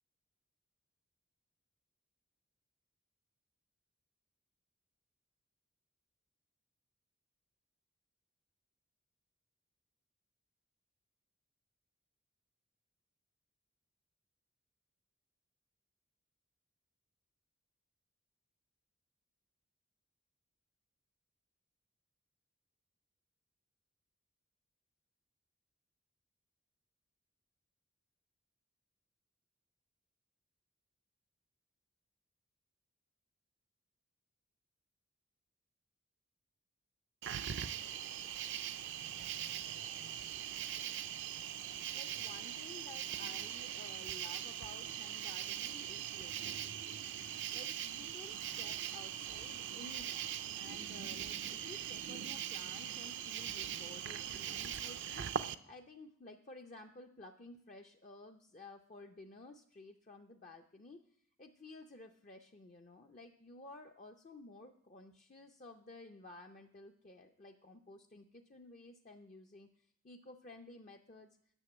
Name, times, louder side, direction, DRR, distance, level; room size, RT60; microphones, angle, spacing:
Cricket, 37.2-55.5, right 10 dB, 55° right, 0.5 m, -41 dB
voice 1, 41.9-47.1 47.5-61.0 61.4-71.4, left 2 dB, 35° left, 3 dB, 0.5 m, -54 dB
9.9 x 6.6 x 7.8 m, 0.67 s
head